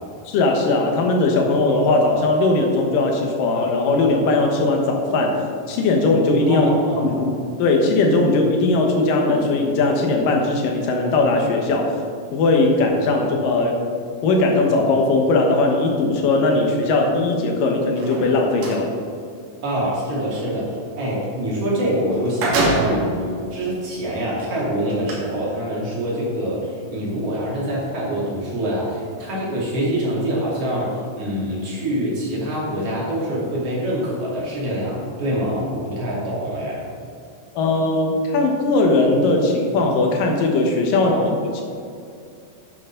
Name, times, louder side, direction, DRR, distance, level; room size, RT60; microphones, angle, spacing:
voice 1, 0.2-5.4 5.7-6.7 7.0-11.9 12.3-13.8 14.2-18.9 37.6-41.6, left 2 dB, 70° left, 2 dB, 2.8 m, -19 dB
voice 2, 6.5-7.2 19.6-36.8 40.9-41.3, right 1 dB, 45° right, -6 dB, 3.4 m, -25 dB
sound 1, 17.9-18.8 21.7-21.8 22.1-23.2 23.9-24.0 24.9-25.1, right 2 dB, 85° right, 4.0 m, -23 dB
11.0 x 9.3 x 3.9 m, 2.4 s
omnidirectional pair, 4.1 m